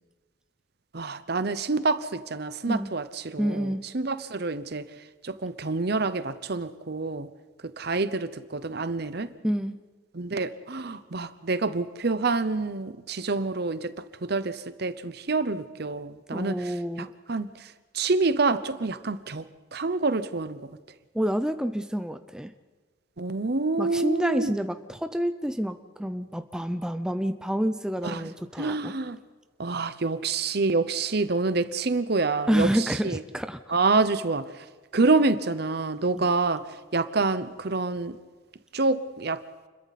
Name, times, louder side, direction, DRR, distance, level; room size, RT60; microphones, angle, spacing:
voice 1, 0.9-4.9 5.2-7.3 7.8-9.3 10.1-13.9 14.2-16.7 17.3-19.4 19.7-20.6 23.2-24.5 28.0-28.3 28.6-29.2 29.6-33.2 33.7-34.6 34.9-36.7 36.9-38.2 38.7-39.4, right 3 dB, 55° right, 0.8 m, -27 dB
voice 2, 3.4-3.8 9.4-9.8 16.3-17.1 21.1-22.5 23.8-28.9 32.5-33.6 36.1-36.2, equal, 5° right, 0.5 m, -28 dB
29.0 x 22.0 x 4.2 m
head